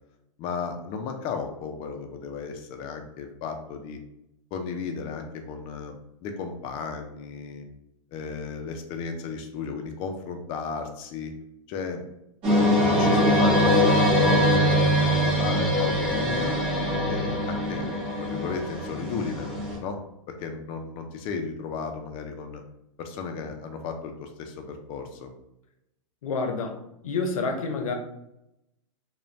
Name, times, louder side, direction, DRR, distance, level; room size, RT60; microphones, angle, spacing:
voice 1, 0.4-4.0 4.5-7.7 8.1-11.3 11.7-12.0 12.5-14.8 15.1-16.6 17.1-17.9 18.2-20.0 20.4-22.6 23.0-25.3, left 5 dB, 30° left, 5 dB, 0.4 m, -34 dB
sound 1, 12.4-19.8, equal, 30° right, 1.1 m, -22 dB
voice 2, 26.2-26.8 27.0-27.9, left 4 dB, 85° left, 4 dB, 0.6 m, -28 dB
2.5 x 2.2 x 3.1 m, 0.83 s
hypercardioid pair, 140°, 17 cm